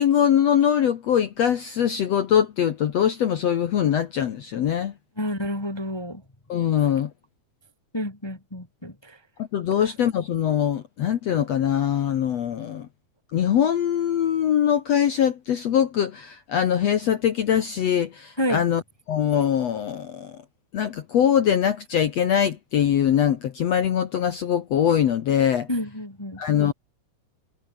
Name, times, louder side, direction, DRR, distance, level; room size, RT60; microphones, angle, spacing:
voice 1, 0.0-4.9 6.5-7.1 9.5-12.9 13.3-18.8 19.1-20.4 20.7-25.7 26.4-26.7, left 9 dB, 60° left, 1.8 m, -22 dB
voice 2, 5.1-6.2 7.9-9.2 9.7-9.9 18.4-18.6 25.7-26.4, equal, 15° left, 0.9 m, -29 dB
omnidirectional pair, 4.4 m